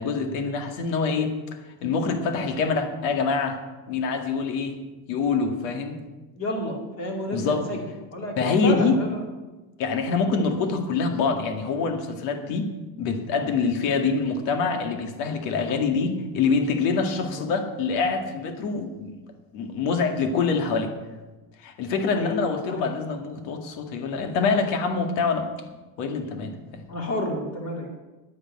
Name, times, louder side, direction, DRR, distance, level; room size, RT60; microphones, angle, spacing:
voice 1, 0.0-1.3 1.8-3.6 3.9-4.8 5.1-6.0 7.3-7.6 8.4-9.0 9.8-12.7 13.0-19.1 19.5-20.9 21.6-25.5 26.0-26.6, left 4 dB, 90° left, 5 dB, 2.2 m, -25 dB
voice 2, 6.4-7.9 8.1-9.2 15.7-15.8 17.2-17.5 22.1-22.3 22.7-22.9 26.9-27.9, left 1 dB, 35° left, 1 dB, 2.4 m, -30 dB
10.0 x 10.0 x 8.7 m, 1.2 s
cardioid pair, 175°, 45 cm